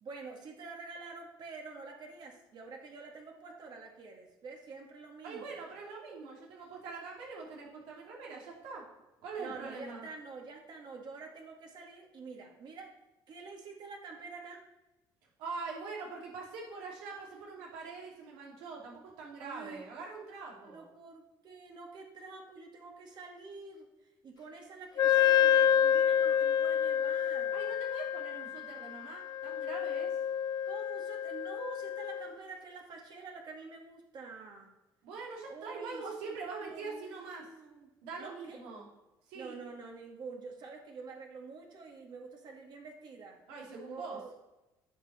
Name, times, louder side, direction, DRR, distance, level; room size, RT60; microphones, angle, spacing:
voice 1, 0.0-5.5 9.4-12.9 13.3-14.6 19.4-19.8 20.6-27.7 30.7-34.7 35.5-38.6 39.3-43.4 43.8-44.3, right 4 dB, 55° right, 1 dB, 1.9 m, -47 dB
voice 2, 5.2-8.8 9.2-10.1 15.4-20.9 27.5-30.1 35.0-37.5 38.0-38.9 39.3-39.6 43.5-44.2, right 4 dB, 85° right, -2 dB, 2.6 m, -43 dB
Wind instrument woodwind instrument, 25.0-32.3, left 9 dB, 50° left, 0.4 m, -28 dB
9.7 x 5.7 x 4.3 m, 1.0 s
supercardioid pair, 80°, 9 cm